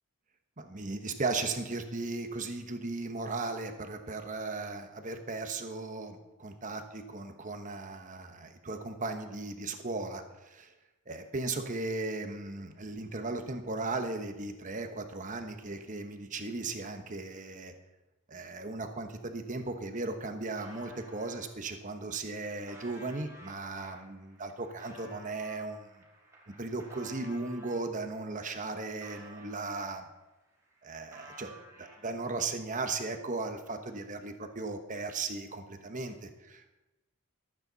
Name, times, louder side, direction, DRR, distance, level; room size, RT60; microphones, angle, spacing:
voice 1, 0.6-10.7 11.1-17.7 18.3-25.9 26.6-30.1 30.8-31.5 31.8-36.7, right 3 dB, 35° right, 6 dB, 1.1 m, -37 dB
sound 1, 19.9-21.4 22.0-27.8 28.3-30.2 30.5-32.4, right 1 dB, 15° right, 3.3 m, -53 dB
23.5 x 9.0 x 4.1 m, 1.1 s
head